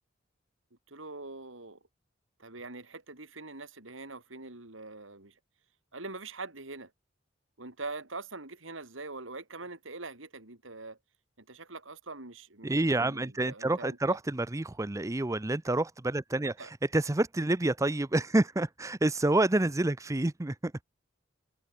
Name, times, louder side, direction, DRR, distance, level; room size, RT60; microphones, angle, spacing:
voice 1, 0.9-1.8 2.4-5.3 5.9-6.9 7.6-11.0 11.4-14.2 16.6-16.7, right 3 dB, 90° right, 4.1 m, -43 dB
voice 2, 12.6-20.7, right 2 dB, 15° right, 0.6 m, -28 dB
head